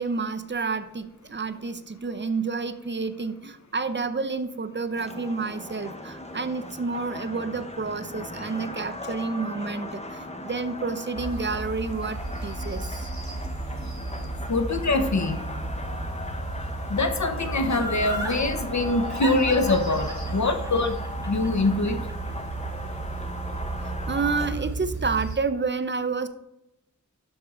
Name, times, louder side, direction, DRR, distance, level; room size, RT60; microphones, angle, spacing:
voice 1, 0.0-13.0 18.7-19.2 23.8-26.3, right 4 dB, 40° right, 9 dB, 0.7 m, -30 dB
sound 1, 4.9-24.5, left 1 dB, 20° left, 0.9 m, -38 dB
sound 2, 11.2-25.4, right 3 dB, 70° right, 3.5 m, -34 dB
voice 2, 14.5-15.4 16.9-20.9 21.3-22.0, left 2 dB, 65° left, 7 dB, 1.0 m, -24 dB
Laughter, 17.7-18.4 19.2-22.3 22.7-22.8, equal, 10° right, 1.5 m, -34 dB
12.0 x 4.6 x 3.8 m, 0.87 s
wide cardioid pair, 75°, 30 cm